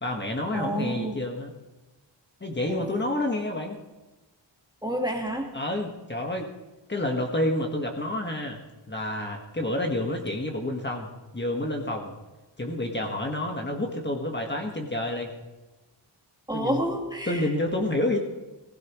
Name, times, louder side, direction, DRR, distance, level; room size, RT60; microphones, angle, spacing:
voice 1, 0.0-1.5 2.4-3.8 5.5-6.5 6.9-8.6 8.9-12.1 12.6-15.3 16.5-16.8 17.3-18.2, left 1 dB, 25° left, 1 dB, 1.5 m, -29 dB
voice 2, 0.5-1.2 2.7-3.0 4.8-5.5 16.5-17.5, right 1 dB, 10° right, 1 dB, 1.7 m, -29 dB
19.0 x 16.0 x 3.1 m, 1.1 s
wide cardioid pair, 110°, 45 cm